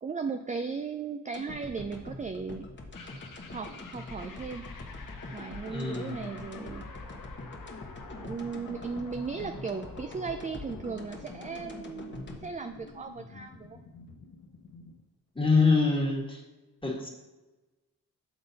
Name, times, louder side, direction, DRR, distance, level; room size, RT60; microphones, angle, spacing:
voice 1, 0.0-2.7 3.5-4.6 5.3-6.8 8.1-13.8, right 5 dB, 20° right, 6 dB, 0.4 m, -37 dB
sound 1, 1.3-13.6 13.9-14.0, left 2 dB, 30° left, 1.1 m, -44 dB
sound 2, 2.9-15.0, left 4 dB, 60° left, 0.9 m, -49 dB
voice 2, 5.7-6.3 15.3-16.4 16.8-17.1, left 4 dB, 15° left, -1 dB, 1.6 m, -25 dB
6.9 x 3.7 x 4.1 m, 1.1 s
cardioid pair, 55°, 36 cm